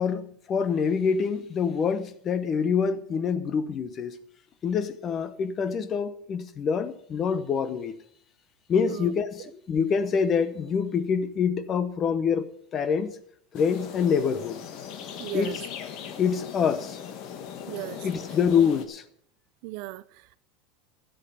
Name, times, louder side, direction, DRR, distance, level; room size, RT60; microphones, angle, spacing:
voice 1, 0.0-4.2 4.6-7.9 8.7-12.5 12.7-13.2 13.5-14.6 15.3-15.6 16.2-17.0 18.0-19.0, left 6 dB, 25° left, 0.8 m, -26 dB
sound 1, 13.5-18.9, left 8 dB, 45° left, 1.2 m, -39 dB
voice 2, 15.2-15.6 17.7-18.1 19.6-20.4, right 19 dB, 50° right, 0.5 m, -37 dB
12.5 x 7.8 x 6.7 m
supercardioid pair, 160°, 0 cm